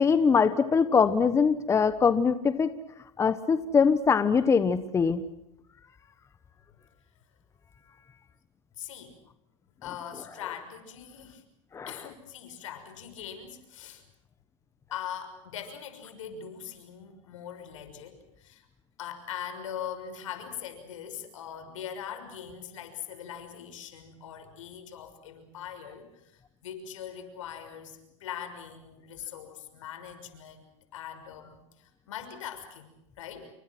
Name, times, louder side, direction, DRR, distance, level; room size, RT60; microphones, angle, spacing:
voice 1, 0.0-2.7 3.2-5.2 11.7-11.9, left 5 dB, 15° left, 12 dB, 1.3 m, -22 dB
voice 2, 8.8-9.1 9.8-11.4 11.9-14.0 14.9-18.7 19.0-33.5, left 9 dB, 80° left, 8 dB, 6.2 m, -41 dB
29.0 x 25.0 x 6.2 m, 0.83 s
supercardioid pair, 125°, 16 cm